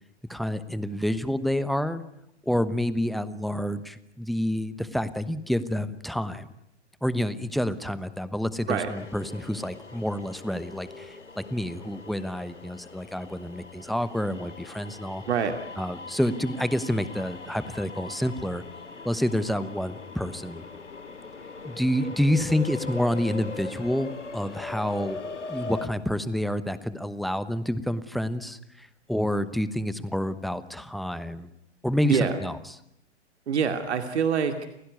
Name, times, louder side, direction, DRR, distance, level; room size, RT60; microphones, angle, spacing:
voice 1, 0.3-2.0 2.5-6.5 7.0-15.2 15.8-18.6 19.0-20.6 21.6-31.5 31.8-32.6, equal, ahead, 14 dB, 1.1 m, -28 dB
sound 1, 8.9-25.9, left 3 dB, 85° left, 2.5 m, -41 dB
voice 2, 15.3-15.6 32.0-32.4 33.5-34.7, right 7 dB, 65° right, 7 dB, 2.6 m, -25 dB
29.5 x 16.0 x 9.5 m, 0.79 s
figure-of-eight pair, 115°, 35 cm